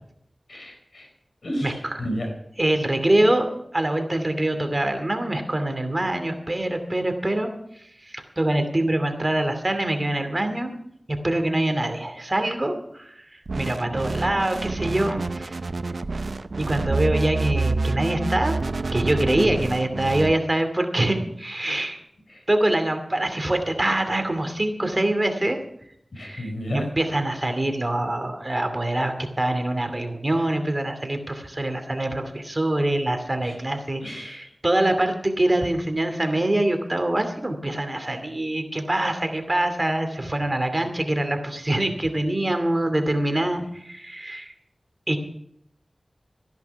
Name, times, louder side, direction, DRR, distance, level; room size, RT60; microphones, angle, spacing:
voice 1, 0.5-1.1 1.4-2.3 19.3-19.6 22.3-22.4 26.1-26.9 33.4-33.6 34.0-34.4, equal, 80° left, 3 dB, 4.5 m, -32 dB
voice 2, 2.6-3.5 3.7-7.5 8.1-10.8 11.2-13.2 13.6-15.5 16.6-18.5 18.9-22.0 22.5-25.6 26.2-44.5 45.1-45.2, right 1 dB, 35° right, 6 dB, 2.5 m, -24 dB
sound 1, 13.5-20.3, right 3 dB, 75° right, 0.6 m, -28 dB
14.5 x 10.5 x 5.8 m, 0.72 s
wide cardioid pair, 45°, 0 cm